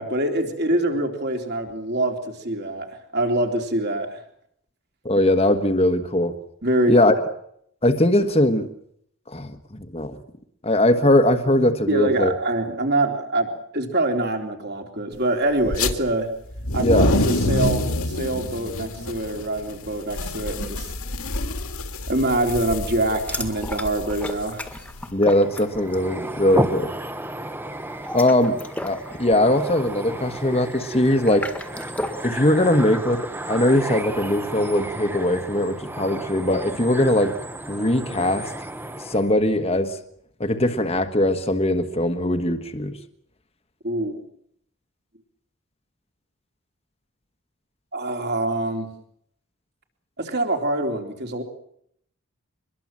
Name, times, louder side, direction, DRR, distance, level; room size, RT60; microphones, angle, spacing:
voice 1, 0.0-2.9 3.1-4.2 6.6-7.2 11.9-16.3 16.7-20.9 22.1-24.6 43.8-44.2 47.9-48.9 50.2-51.4, right 1 dB, 45° right, 4 dB, 3.6 m, -25 dB
voice 2, 5.0-6.3 6.9-7.1 7.8-8.7 9.3-10.2 10.6-12.3 16.8-17.1 25.1-26.9 28.1-28.6 28.8-31.5 32.2-37.3 37.7-38.5 39.0-40.0 40.4-42.9, left 1 dB, 25° left, 6 dB, 1.4 m, -20 dB
sound 1, 15.7-15.9 16.5-25.0, left 2 dB, 75° left, 2.4 m, -26 dB
sound 2, 23.2-26.1 26.4-26.7 27.9-32.3, left 1 dB, 5° left, 1.8 m, -34 dB
sound 3, 25.3-39.3, right 1 dB, 10° right, 1.1 m, -32 dB
24.0 x 21.5 x 7.5 m, 0.70 s
head